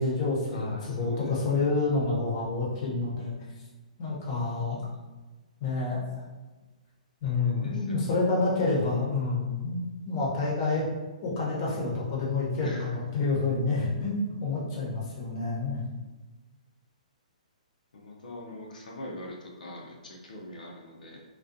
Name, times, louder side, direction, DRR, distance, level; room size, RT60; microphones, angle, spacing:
voice 1, 0.0-3.3 4.0-4.8 5.6-6.0 7.2-10.8 11.2-15.8, left 3 dB, 35° left, -5 dB, 0.8 m, -28 dB
voice 2, 0.5-1.8 7.2-8.1 12.6-12.9 17.9-21.2, left 1 dB, 90° left, -2 dB, 0.5 m, -43 dB
2.4 x 2.2 x 2.5 m, 1.2 s
hypercardioid pair, 155°, 4 cm